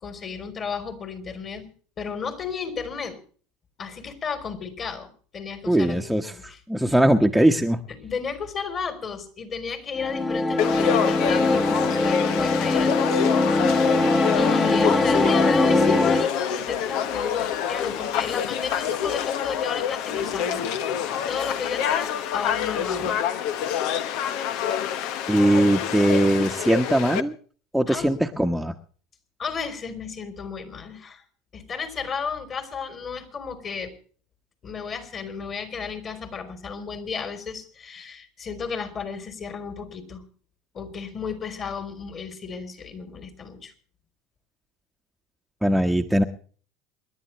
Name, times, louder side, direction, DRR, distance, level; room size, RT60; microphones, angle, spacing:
voice 1, 0.0-1.7 2.0-3.2 3.8-5.1 5.3-6.0 6.3-6.6 6.9-7.0 7.9-13.3 13.6-14.0 14.3-20.6 21.3-23.2 27.9-28.2 29.4-31.2 31.5-33.9 34.6-40.2 40.7-43.7, left 6 dB, 40° left, 9 dB, 3.9 m, -33 dB
voice 2, 5.7-7.8 25.3-27.3 27.7-28.7 45.6-46.2, right 1 dB, ahead, 3 dB, 1.3 m, -20 dB
sound 1, 10.0-16.3, left 2 dB, 20° left, 1.5 m, -21 dB
Conversation / Crowd, 10.6-27.2, left 9 dB, 65° left, 1.0 m, -27 dB
27.5 x 11.0 x 3.2 m, 0.44 s
hypercardioid pair, 85°, 0 cm